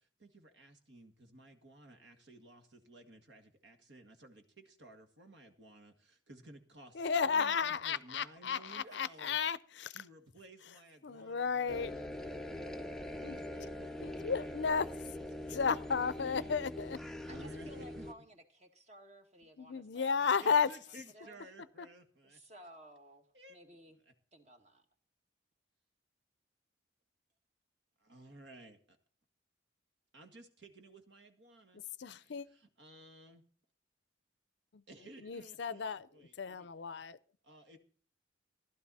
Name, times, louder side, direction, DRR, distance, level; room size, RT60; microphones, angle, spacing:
voice 1, 0.0-9.4 9.9-12.0 12.5-12.8 13.1-14.7 15.1-16.5 17.1-18.1 20.4-22.4 23.3-23.6 23.9-24.1 28.0-29.0 30.1-31.8 32.1-33.4 34.9-36.7 37.4-37.8, right 1 dB, 65° right, 1.9 m, -56 dB
voice 2, 7.0-9.9 11.0-11.9 13.2-13.4 14.0-14.9 15.5-17.0 19.6-20.7 32.0-32.5 34.7-34.8 35.2-36.1 36.4-37.2, left 6 dB, 60° left, 0.5 m, -33 dB
sound 1, 11.7-18.1, left 1 dB, 5° left, 0.5 m, -43 dB
voice 3, 17.3-21.4 22.2-24.0 24.3-24.9, right 1 dB, 35° right, 1.9 m, -57 dB
15.5 x 12.0 x 4.2 m
head